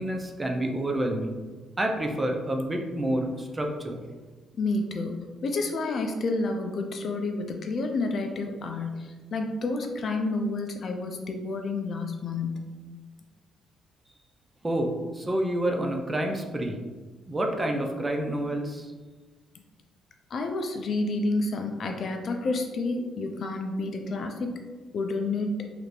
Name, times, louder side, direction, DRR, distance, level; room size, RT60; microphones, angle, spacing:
voice 1, 0.0-1.4 1.8-4.0 14.6-16.8 17.3-18.9, right 1 dB, 20° right, 3 dB, 0.5 m, -28 dB
voice 2, 4.6-12.7 20.3-24.6 24.9-25.5, left 3 dB, 55° left, 4 dB, 0.4 m, -30 dB
3.2 x 2.4 x 3.2 m, 1.3 s
cardioid pair, 90°, 0 cm